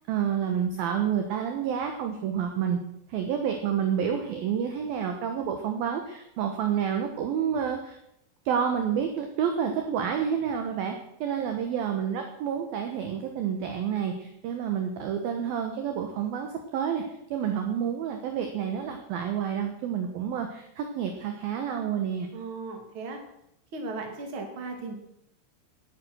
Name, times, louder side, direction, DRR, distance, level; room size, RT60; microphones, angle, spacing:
voice 1, 0.1-2.8 3.1-8.0 8.5-11.0 11.2-17.0 17.3-22.3, right 8 dB, 70° right, 4 dB, 2.4 m, -29 dB
voice 2, 22.3-23.2 23.7-24.9, right 3 dB, 35° right, 2 dB, 2.5 m, -36 dB
18.5 x 8.5 x 6.2 m, 0.79 s
omnidirectional pair, 5.5 m